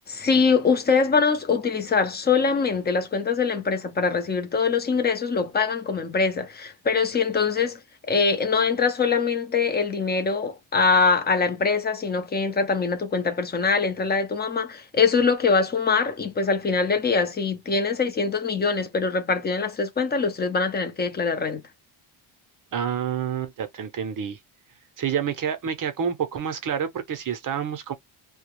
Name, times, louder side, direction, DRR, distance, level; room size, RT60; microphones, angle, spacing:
voice 1, 0.1-7.8 8.1-21.6, left 5 dB, 20° left, 0.5 m, -23 dB
voice 2, 22.7-24.4 25.0-27.9, right 8 dB, 40° right, 0.6 m, -28 dB
2.2 x 2.1 x 2.9 m
cardioid pair, 165°, 50 cm